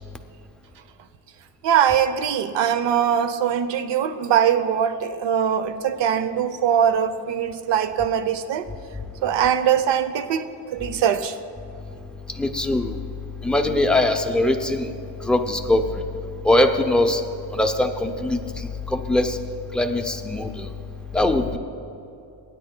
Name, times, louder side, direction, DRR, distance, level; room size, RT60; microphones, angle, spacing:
voice 1, 1.6-8.7 9.2-11.4, right 8 dB, 75° right, 11 dB, 0.7 m, -22 dB
voice 2, 12.4-13.0 13.4-14.9 15.3-15.8 16.4-17.2 17.5-19.4 19.7-20.7 21.1-21.6, left 1 dB, ahead, 5 dB, 0.4 m, -21 dB
24.5 x 9.8 x 2.2 m, 2.7 s
cardioid pair, 150°, 44 cm